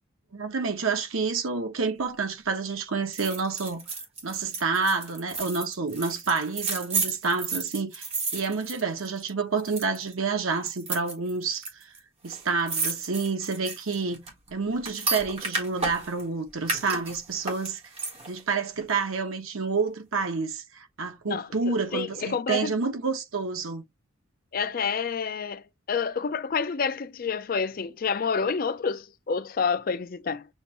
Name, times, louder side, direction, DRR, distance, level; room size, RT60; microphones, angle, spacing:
voice 1, 0.3-3.8 4.2-11.7 12.2-14.2 14.5-17.8 18.3-23.8, right 4 dB, 80° right, 1.0 m, -29 dB
sound 1, 3.1-9.3 9.6-10.1 10.7-11.7 12.0-12.1 12.3-16.2 16.6-18.4 18.8-18.9, right 4 dB, 30° right, 1.4 m, -32 dB
voice 2, 21.3-22.7 24.5-30.5, left 5 dB, 45° left, 0.4 m, -29 dB
6.8 x 2.5 x 2.9 m
head